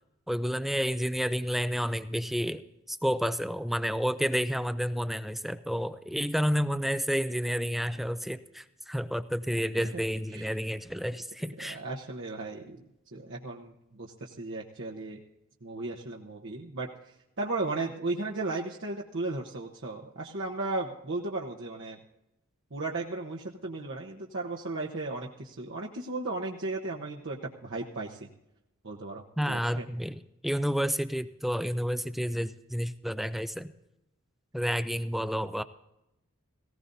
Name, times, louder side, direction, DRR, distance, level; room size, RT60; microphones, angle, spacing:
voice 1, 0.3-2.6 2.9-11.8 29.4-33.7 34.5-35.6, equal, ahead, 12 dB, 0.4 m, -30 dB
voice 2, 11.6-12.8 13.1-15.2 15.6-16.9 17.4-22.0 22.7-28.2 28.8-29.9, right 2 dB, 60° right, -1 dB, 1.0 m, -35 dB
18.5 x 17.0 x 2.7 m, 0.89 s
head